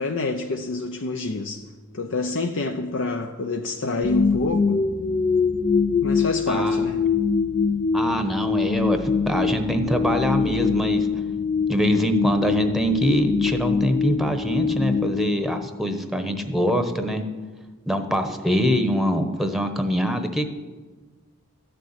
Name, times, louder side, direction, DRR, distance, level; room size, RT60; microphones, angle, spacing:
voice 1, 0.0-1.6 1.9-4.8 6.0-7.0, left 3 dB, 60° left, 4 dB, 0.8 m, -27 dB
sound 1, 4.0-16.2, left 5 dB, 35° left, 0.4 m, -24 dB
voice 2, 6.5-6.9 7.9-11.1 11.7-17.2 17.9-20.5, equal, ahead, 6 dB, 1.0 m, -24 dB
13.5 x 6.8 x 9.6 m, 1.3 s
head